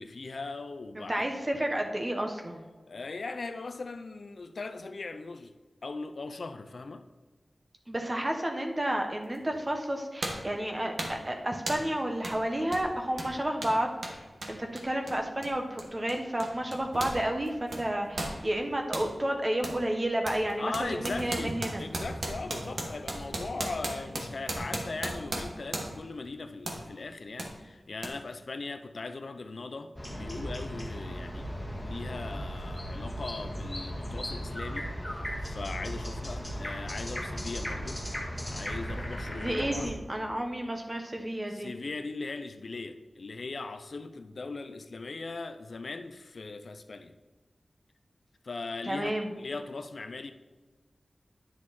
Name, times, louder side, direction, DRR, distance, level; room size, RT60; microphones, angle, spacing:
voice 1, 0.0-1.3 2.9-5.5 5.8-7.1 20.6-31.5 31.8-38.0 38.4-40.0 41.5-47.2 48.4-50.3, left 3 dB, 75° left, 0.6 m, -39 dB
voice 2, 1.0-2.6 7.9-13.9 14.5-21.9 39.3-41.7 48.8-49.3, right 1 dB, 30° right, 1.2 m, -31 dB
sound 1, 9.3-9.5 10.2-10.5 11.0-11.3 11.7-11.9 12.2-12.4 12.7-17.2 17.5-19.1 19.6-19.8 20.2-26.1 26.6-26.8 27.4-27.5 28.0-28.1, right 1 dB, 65° right, 1.5 m, -36 dB
sound 2, 30.0-39.9, equal, 5° left, 2.0 m, -36 dB
10.5 x 6.4 x 4.3 m
wide cardioid pair, 95°, 0 cm